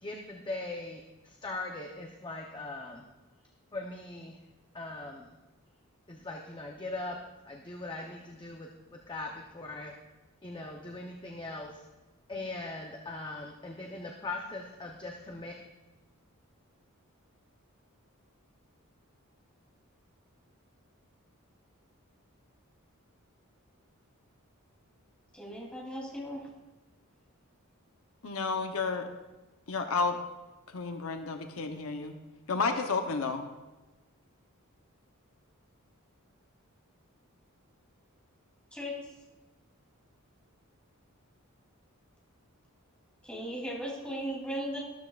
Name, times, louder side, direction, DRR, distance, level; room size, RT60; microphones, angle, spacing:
voice 1, 0.0-3.0 3.7-4.4 4.7-5.3 6.1-7.2 7.4-9.9 10.4-11.8 12.3-15.5, left 2 dB, 20° left, 1 dB, 0.7 m, -40 dB
voice 2, 25.3-26.4 38.7-38.9 43.3-44.8, equal, 5° left, -5 dB, 3.0 m, -37 dB
voice 3, 28.2-29.1 29.7-30.2 30.7-32.1 32.5-33.5, left 4 dB, 75° left, 5 dB, 0.8 m, -31 dB
13.0 x 12.5 x 2.4 m, 1.1 s
head